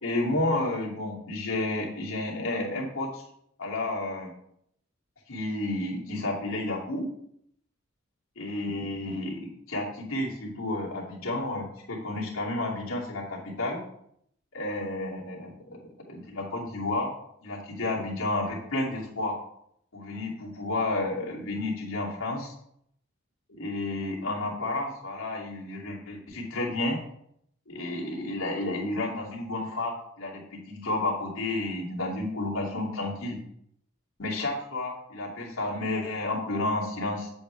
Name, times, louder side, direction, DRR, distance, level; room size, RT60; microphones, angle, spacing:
voice 1, 0.0-3.2 3.6-4.3 5.3-7.1 8.4-13.8 14.5-17.1 17.4-19.4 19.9-22.5 23.6-27.0 27.7-30.4 30.7-33.4 34.2-37.3, left 2 dB, 90° left, -3 dB, 2.6 m, -31 dB
9.2 x 7.9 x 3.3 m, 0.72 s
head